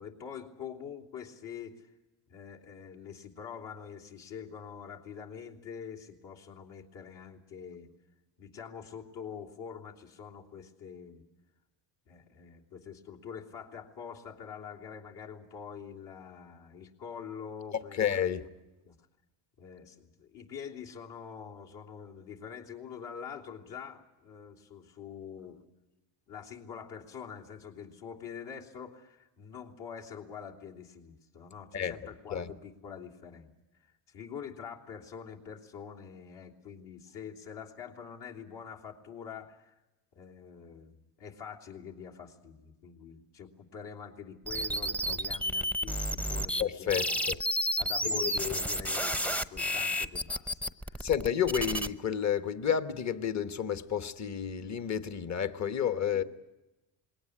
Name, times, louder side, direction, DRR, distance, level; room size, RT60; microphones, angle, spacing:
voice 1, 0.0-1.9 2.3-7.9 8.4-11.2 12.1-18.5 18.8-18.9 19.6-25.6 26.3-33.5 34.1-39.7 40.1-47.3 47.8-51.1 56.1-56.2, left 7 dB, 65° left, -1 dB, 3.3 m, -45 dB
voice 2, 17.9-18.5 31.7-31.9 32.3-32.5 45.1-45.2 46.6-47.4 48.0-48.6 51.0-56.2, left 8 dB, 35° left, 12 dB, 1.2 m, -31 dB
sound 1, 44.5-46.6 46.9-51.9, equal, 5° left, 0.7 m, -31 dB
21.0 x 18.0 x 10.0 m, 1.0 s
supercardioid pair, 95°, 46 cm